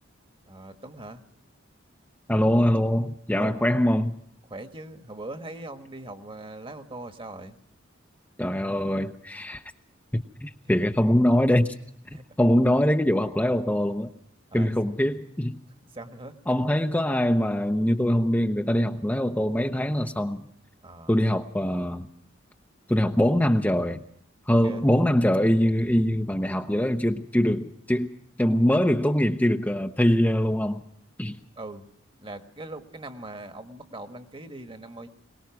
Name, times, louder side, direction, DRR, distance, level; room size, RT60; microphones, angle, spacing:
voice 1, 0.5-1.2 3.3-3.6 4.5-7.6 12.1-12.2 14.5-14.7 15.9-16.4 20.8-21.1 24.6-24.9 31.6-31.9 32.2-35.1, right 2 dB, 25° right, 1.5 m, -40 dB
voice 2, 2.3-4.1 8.4-9.6 10.1-11.7 12.4-14.1 14.5-15.6 16.5-20.4 21.1-22.1 22.9-24.0 24.5-28.1 28.4-30.8 31.2-31.4, equal, 10° left, 0.7 m, -23 dB
23.0 x 19.5 x 5.9 m
head